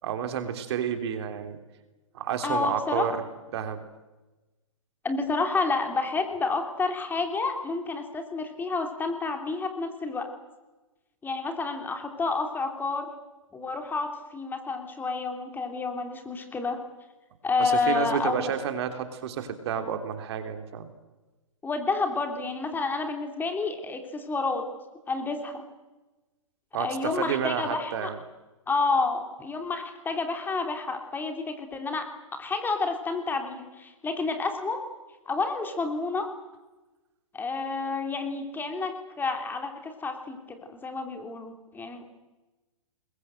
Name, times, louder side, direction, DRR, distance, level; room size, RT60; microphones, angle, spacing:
voice 1, 0.0-1.6 2.1-3.2 3.5-3.8 17.6-20.9 26.7-28.2, right 8 dB, 50° right, 7 dB, 3.2 m, -30 dB
voice 2, 2.4-3.1 5.0-10.3 11.2-13.1 13.5-16.8 17.4-18.5 21.6-24.7 25.1-25.7 26.8-28.1 28.7-34.8 35.2-36.3 37.3-42.0, left 4 dB, 10° left, 5 dB, 3.1 m, -29 dB
27.0 x 21.5 x 7.9 m, 1.1 s
hypercardioid pair, 130°, 17 cm